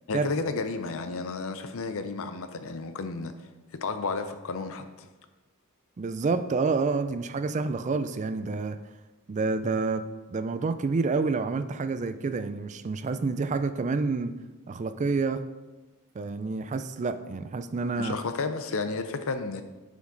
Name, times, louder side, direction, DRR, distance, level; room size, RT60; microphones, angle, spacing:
voice 1, 0.1-3.3 3.7-5.1 18.0-19.6, left 4 dB, 65° left, 9 dB, 0.6 m, -32 dB
voice 2, 6.0-8.8 9.3-10.0 10.3-14.3 14.7-15.4 16.2-18.2, right 4 dB, 35° right, 11 dB, 0.4 m, -28 dB
8.3 x 5.1 x 3.9 m, 1.2 s
head